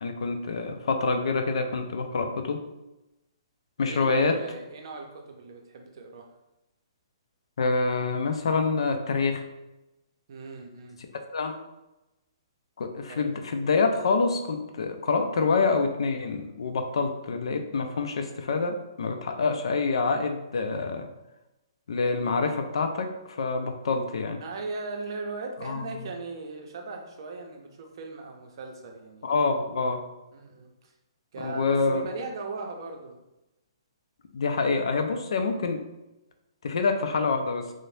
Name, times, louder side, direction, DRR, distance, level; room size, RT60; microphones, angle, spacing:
voice 1, 0.0-2.6 3.8-4.4 7.6-9.4 11.3-11.6 12.8-21.1 21.9-24.4 25.6-25.8 29.2-30.0 31.4-32.1 34.3-35.8 36.6-37.7, left 4 dB, 75° left, 5 dB, 0.4 m, -26 dB
voice 2, 3.8-6.3 10.3-11.0 13.1-13.3 24.4-29.3 30.3-30.9 31.3-33.2, right 3 dB, 55° right, 3 dB, 0.5 m, -38 dB
2.6 x 2.0 x 3.1 m, 0.96 s
hypercardioid pair, 155°, 3 cm